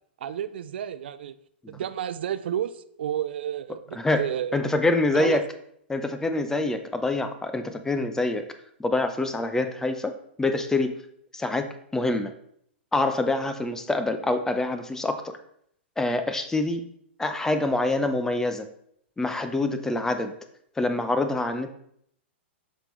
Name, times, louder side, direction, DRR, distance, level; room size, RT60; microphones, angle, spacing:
voice 1, 0.2-1.4 1.7-4.6 5.1-5.4, right 10 dB, 60° right, 14 dB, 0.4 m, -31 dB
voice 2, 4.5-5.4 5.9-8.5 8.8-10.9 11.3-12.3 12.9-15.4 16.0-16.9 17.2-18.7 19.2-20.3 20.8-21.7, left 2 dB, 10° left, 8 dB, 0.6 m, -26 dB
7.4 x 5.4 x 3.2 m, 0.69 s
figure-of-eight pair, 110°, 6 cm